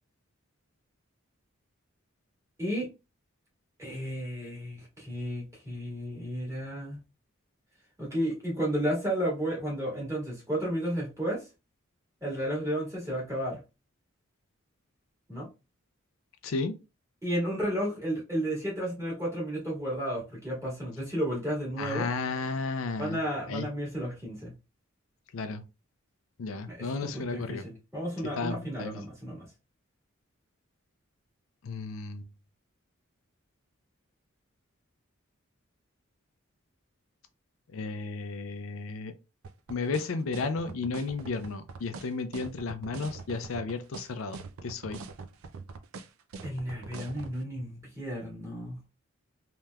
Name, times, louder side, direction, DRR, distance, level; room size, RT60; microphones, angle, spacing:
voice 1, 3.8-7.0 8.0-11.4 12.2-13.6 15.3-15.5 17.2-22.1 23.0-24.5 26.7-29.4 46.4-48.9, equal, 15° right, 1.7 m, -32 dB
voice 2, 16.4-16.8 21.8-23.2 23.5-23.7 25.3-25.6 26.4-27.7 28.4-28.9 31.6-32.2 37.7-39.1 39.7-45.0, left 4 dB, 75° left, 0.4 m, -33 dB
sound 1, 39.4-47.4, right 4 dB, 85° right, 0.4 m, -42 dB
3.3 x 2.9 x 2.2 m
head